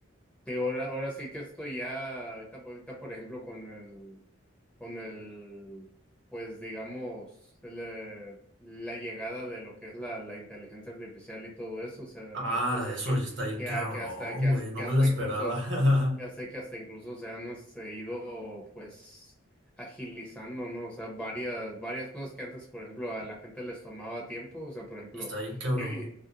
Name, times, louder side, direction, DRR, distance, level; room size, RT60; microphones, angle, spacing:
voice 1, 0.5-4.2 4.8-5.9 6.3-7.3 7.6-13.1 13.6-15.6 16.2-19.3 19.8-25.3 25.8-26.1, equal, 5° left, -3 dB, 0.7 m, -39 dB
voice 2, 12.3-16.2 25.1-26.0, left 1 dB, 65° right, -1 dB, 0.9 m, -28 dB
2.5 x 2.0 x 2.8 m, 0.68 s
head